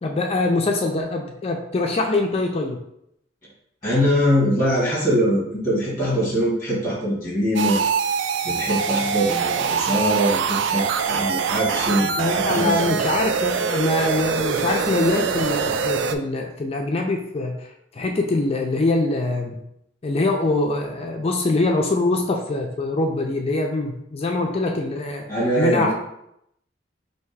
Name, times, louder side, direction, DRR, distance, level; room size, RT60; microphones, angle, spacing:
voice 1, 0.0-2.8 12.2-19.6 20.0-25.3 25.6-25.9, left 2 dB, 30° left, 2 dB, 0.4 m, -23 dB
voice 2, 3.8-7.8 8.4-13.0 25.3-25.9, equal, 15° left, -6 dB, 1.5 m, -22 dB
sound 1, 7.6-16.2, right 6 dB, 75° right, 0.3 m, -23 dB
3.4 x 2.7 x 4.6 m, 0.78 s
head